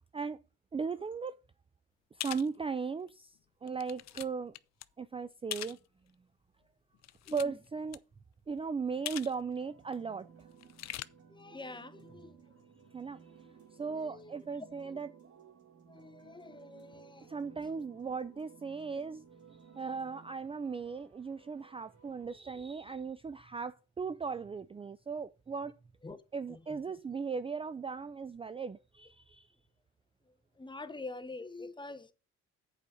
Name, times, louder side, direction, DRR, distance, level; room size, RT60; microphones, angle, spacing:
voice 1, 0.7-1.4 2.1-4.5 5.0-5.8 7.3-8.0 8.5-10.3 12.9-13.2 13.7-15.1 17.3-19.2 19.5-25.7 26.3-29.5, right 5 dB, 20° right, 0.4 m, -37 dB
sound 1, 2.2-2.5 3.1-3.2 3.7-4.3 4.5-4.8 5.5-5.8 6.9-7.7 7.9-8.0 9.1-9.3 9.6-9.7 10.6-11.0, left 13 dB, 60° left, 0.6 m, -41 dB
voice 2, 7.3-7.6 11.3-12.3 13.8-15.0 15.9-17.3 26.0-26.2 26.5-26.8 30.6-32.1, left 3 dB, 15° left, 0.9 m, -46 dB
sound 2, 9.6-22.2, right 6 dB, 50° right, 2.5 m, -58 dB
8.2 x 5.0 x 6.3 m
cardioid pair, 90°, 30 cm